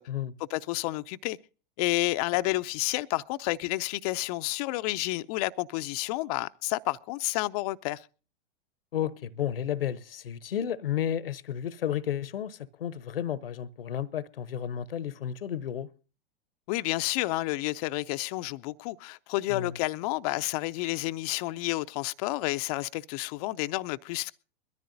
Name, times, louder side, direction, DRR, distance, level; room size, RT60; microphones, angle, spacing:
voice 1, 0.5-1.4 1.8-8.1 16.7-24.3, left 19 dB, 40° left, 0.5 m, -30 dB
voice 2, 8.9-15.9 19.5-19.7, left 10 dB, 75° left, 0.9 m, -32 dB
22.5 x 14.0 x 2.6 m
figure-of-eight pair, 100°, 29 cm